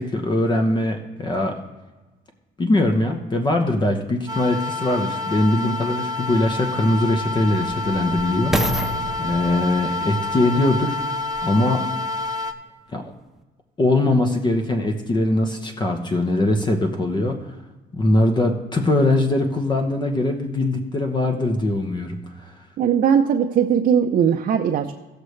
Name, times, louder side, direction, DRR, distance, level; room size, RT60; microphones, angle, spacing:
voice 1, 0.0-1.6 2.6-8.8 9.2-11.9 12.9-13.0 13.8-17.5 17.9-22.5, left 1 dB, 25° left, 5 dB, 1.0 m, -21 dB
sound 1, 4.3-12.5, left 2 dB, 20° right, 1.0 m, -28 dB
sound 2, 5.5-5.6 6.3-11.6 12.3-12.4, equal, ahead, 0.7 m, -30 dB
voice 2, 22.8-25.0, right 8 dB, 55° right, 4 dB, 0.6 m, -19 dB
18.0 x 6.7 x 3.2 m, 1.2 s
cardioid pair, 110°, 17 cm